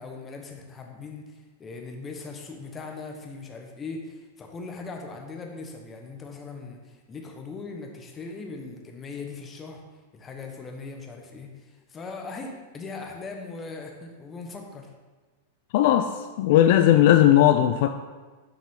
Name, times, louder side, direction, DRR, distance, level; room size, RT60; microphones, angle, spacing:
voice 1, 0.0-9.8 10.1-14.9, left 4 dB, 20° left, 2 dB, 1.1 m, -39 dB
voice 2, 15.7-17.9, left 12 dB, 60° left, 8 dB, 0.4 m, -18 dB
7.5 x 5.6 x 3.7 m, 1.3 s
hypercardioid pair, 125°, 0 cm